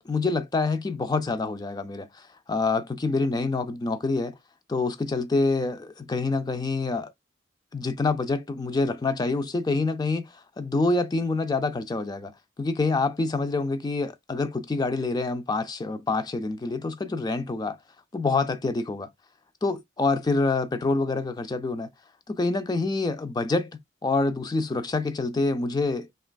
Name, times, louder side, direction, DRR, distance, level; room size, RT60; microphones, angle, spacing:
voice 1, 0.1-4.4 4.7-7.1 7.7-12.3 12.6-17.8 18.1-19.1 19.6-21.9 22.3-26.1, left 3 dB, 20° left, 0.3 m, -26 dB
3.2 x 2.3 x 2.2 m
head